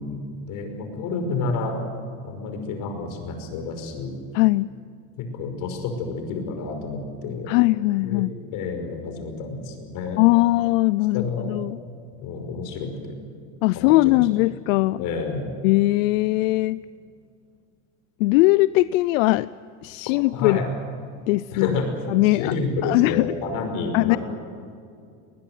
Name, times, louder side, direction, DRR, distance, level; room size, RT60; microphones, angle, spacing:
voice 1, 0.0-1.8 2.2-4.1 5.2-7.5 8.0-8.3 8.5-10.2 11.1-11.5 12.2-13.2 13.7-14.2 15.0-15.5 20.3-20.7 21.5-21.9 22.2-24.2, left 4 dB, 55° left, 5 dB, 5.6 m, -29 dB
voice 2, 4.3-4.7 7.5-8.3 10.2-11.8 13.6-15.0 15.6-16.8 18.2-19.5 19.8-20.6 21.3-21.7 22.1-22.5 22.8-23.3 23.9-24.2, left 20 dB, 85° left, 18 dB, 0.5 m, -20 dB
20.5 x 20.0 x 9.2 m, 2.3 s
supercardioid pair, 130°, 38 cm